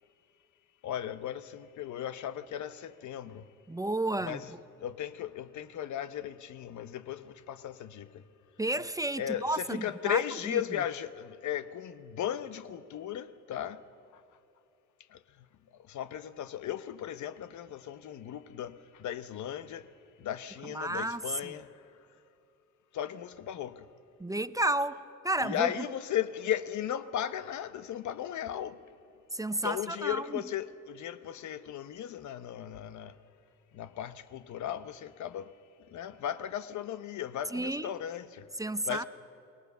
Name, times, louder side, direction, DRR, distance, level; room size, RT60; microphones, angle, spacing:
voice 1, 0.8-3.5 4.2-4.5 4.8-8.2 9.2-13.8 14.1-14.2 15.1-15.2 15.8-19.9 20.2-22.0 22.9-23.9 25.4-28.8 29.6-33.2 33.7-35.5 35.9-38.5 38.8-39.1, left 10 dB, 70° left, 1.0 m, -36 dB
voice 2, 3.7-4.4 8.6-10.2 10.5-10.6 20.7-21.5 24.2-25.7 29.3-30.4 37.5-37.9 38.6-39.0, right 1 dB, 10° right, 0.6 m, -32 dB
28.5 x 20.0 x 6.8 m
cardioid pair, 90°, 30 cm